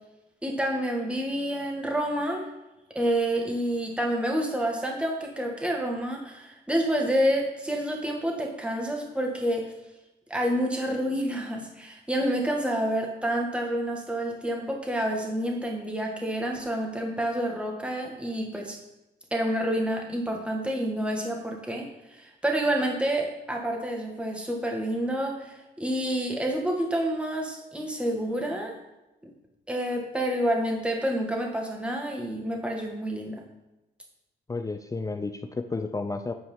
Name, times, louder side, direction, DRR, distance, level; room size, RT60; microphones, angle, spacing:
voice 1, 0.4-2.5 3.0-9.7 10.3-18.8 19.3-28.8 29.7-33.4, right 1 dB, 5° right, 0 dB, 1.8 m, -28 dB
voice 2, 34.5-36.3, left 3 dB, 15° left, 7 dB, 0.5 m, -32 dB
8.9 x 4.7 x 5.6 m, 0.97 s
cardioid pair, 90°, 20 cm